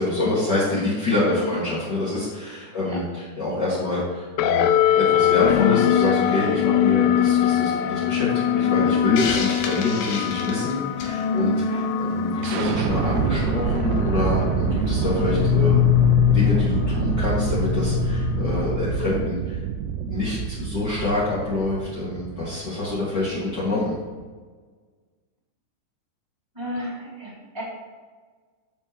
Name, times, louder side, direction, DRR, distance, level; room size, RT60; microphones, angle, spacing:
voice 1, 0.0-19.6 20.0-23.9, left 2 dB, 50° left, -9 dB, 1.3 m, -26 dB
voice 2, 1.2-1.5 2.8-3.0 11.6-11.8 26.5-27.6, right 1 dB, 10° right, -7 dB, 1.8 m, -33 dB
sound 1, 4.4-19.1, left 10 dB, 85° left, 3.0 m, -22 dB
Hiss, 9.2-11.2, left 5 dB, 70° left, 2.2 m, -30 dB
sound 2, 12.4-24.3, right 7 dB, 85° right, 2.6 m, -27 dB
14.0 x 6.8 x 3.1 m, 1.4 s
omnidirectional pair, 5.4 m